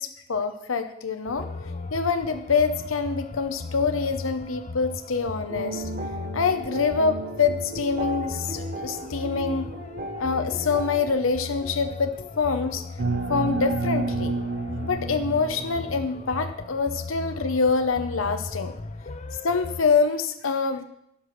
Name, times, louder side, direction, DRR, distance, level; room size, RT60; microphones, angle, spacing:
voice 1, 0.0-1.5 1.9-5.8 6.3-9.7 10.2-12.8 13.3-14.3 14.8-18.7 19.4-20.8, left 5 dB, 90° left, 8 dB, 0.8 m, -25 dB
sound 1, 1.3-19.8, left 3 dB, 35° left, 0.6 m, -37 dB
sound 2, 5.5-11.0, right 1 dB, 45° right, 0.8 m, -36 dB
sound 3, 13.0-16.5, right 3 dB, 85° right, 0.8 m, -29 dB
10.0 x 6.0 x 6.5 m, 0.77 s
head